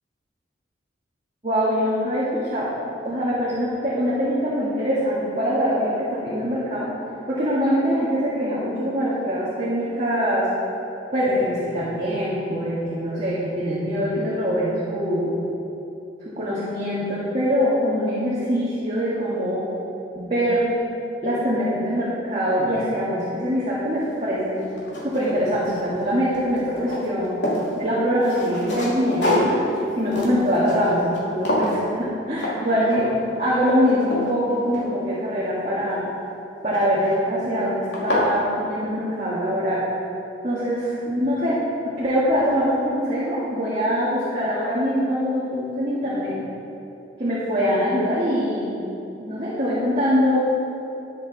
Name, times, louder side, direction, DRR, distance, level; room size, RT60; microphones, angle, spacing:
voice 1, 1.4-2.7 3.0-6.9 7.3-10.5 11.1-15.4 16.2-19.6 20.2-20.8 21.2-24.6 25.0-27.4 27.8-29.6 30.0-33.1 33.4-36.0 36.6-39.8 40.4-41.6 41.8-46.4 47.2-48.9 49.2-50.4, equal, 35° right, -8 dB, 1.8 m, -23 dB
sound 1, 24.0-24.1 24.6-26.0 26.3-27.7 28.2-31.2 31.5-31.8 32.4-32.6 32.9-33.3 33.7-35.3 36.7-37.1 37.6-37.7 37.9-38.3, left 1 dB, 70° left, 2.4 m, -27 dB
11.0 x 9.6 x 4.1 m, 2.9 s
head